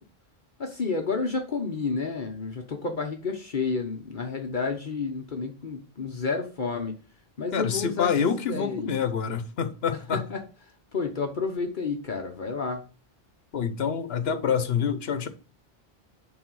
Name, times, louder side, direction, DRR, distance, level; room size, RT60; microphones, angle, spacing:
voice 1, 0.6-7.0 7.4-8.1 8.4-8.9 10.1-10.4 10.9-12.8, left 4 dB, 55° left, 1.1 m, -30 dB
voice 2, 7.5-10.2 13.5-15.3, left 7 dB, 75° left, 1.1 m, -27 dB
10.0 x 4.0 x 6.2 m
omnidirectional pair, 1.0 m